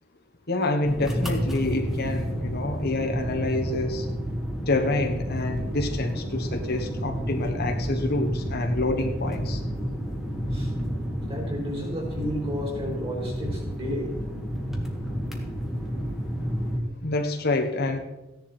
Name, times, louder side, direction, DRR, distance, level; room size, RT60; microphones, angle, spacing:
voice 1, 0.5-4.0 4.7-9.6 17.0-18.0, left 2 dB, 55° left, 4 dB, 1.4 m, -27 dB
sound 1, 0.8-16.8, equal, ahead, 1.7 m, -30 dB
voice 2, 11.3-14.1, equal, 30° right, 0 dB, 4.5 m, -32 dB
15.0 x 10.5 x 4.4 m, 0.99 s
head